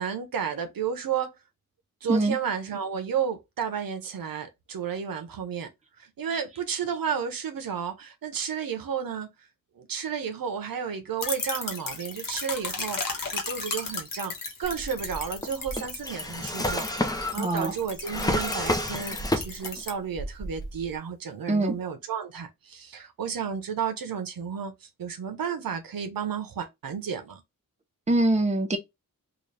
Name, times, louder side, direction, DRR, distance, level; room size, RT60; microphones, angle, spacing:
voice 1, 0.0-1.4 2.0-5.7 6.0-9.3 9.8-14.3 14.6-27.4, right 7 dB, 80° right, 0.8 m, -32 dB
sound 1, 11.2-19.9, left 4 dB, 70° left, 1.2 m, -35 dB
Drawer open or close, 14.6-19.8 20.1-20.9, left 1 dB, 10° left, 0.6 m, -30 dB
voice 2, 17.4-17.7 21.5-21.7 28.1-28.8, right 2 dB, 20° right, 0.8 m, -23 dB
3.8 x 2.4 x 3.2 m
wide cardioid pair, 100°, 34 cm